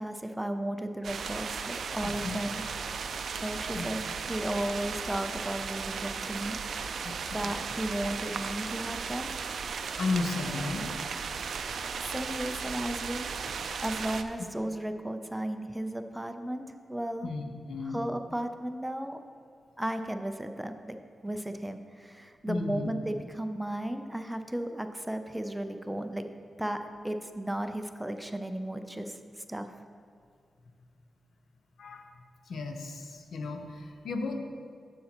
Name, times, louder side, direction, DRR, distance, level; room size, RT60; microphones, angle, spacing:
voice 1, 0.0-2.6 3.4-6.6 7.3-9.3 11.3-13.3 13.8-17.3 17.8-19.2 19.8-21.0 21.2-26.2 26.6-29.7, right 1 dB, 5° right, 7 dB, 0.4 m, -35 dB
sound 1, 1.0-14.2, right 5 dB, 75° right, 0.4 m, -36 dB
voice 2, 2.0-2.4 3.7-3.9 7.0-7.6 10.0-10.9 17.2-18.1 22.5-22.9 31.8-32.1 32.5-34.4, left 3 dB, 80° left, 4 dB, 0.8 m, -34 dB
9.7 x 7.6 x 2.9 m, 2.2 s
cardioid pair, 95°, 0 cm